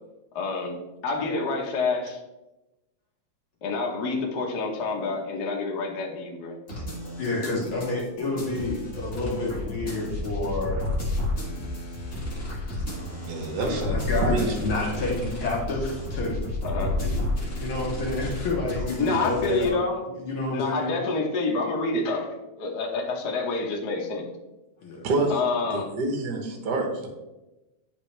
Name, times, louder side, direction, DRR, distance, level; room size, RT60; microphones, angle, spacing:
voice 1, 0.3-0.8 1.0-2.2 3.6-6.6 16.6-16.9 19.0-20.0 20.5-24.2 25.3-25.9, left 3 dB, 80° left, 0 dB, 0.9 m, -28 dB
sound 1, 6.7-19.7, left 1 dB, 25° left, 1.3 m, -31 dB
voice 2, 7.2-10.8 12.4-12.9 13.6-16.4 17.0-17.2 17.6-19.8 20.2-20.9 24.8-25.1, left 2 dB, 60° left, -3 dB, 1.5 m, -29 dB
voice 3, 13.2-14.5 14.9-15.1 25.0-27.1, right 2 dB, 75° right, 2 dB, 0.9 m, -28 dB
11.0 x 3.6 x 3.2 m, 1.0 s
omnidirectional pair, 3.5 m